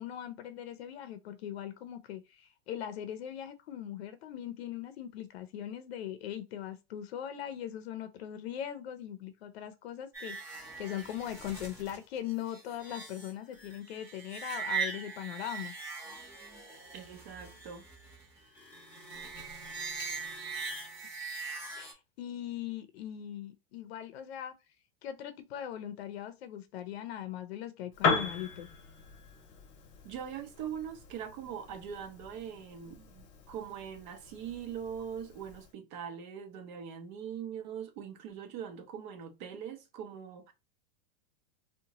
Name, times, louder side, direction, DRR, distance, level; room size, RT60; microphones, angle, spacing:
voice 1, 0.0-15.7 21.8-24.5 25.0-28.7, left 11 dB, 85° left, 0.6 m, -40 dB
sound 1, 10.1-21.9, right 5 dB, 10° right, 0.8 m, -41 dB
voice 2, 16.9-17.9 30.0-40.5, right 8 dB, 50° right, 0.7 m, -42 dB
Piano, 27.9-35.7, left 5 dB, 35° left, 0.9 m, -38 dB
2.7 x 2.2 x 2.9 m
supercardioid pair, 150°, 30 cm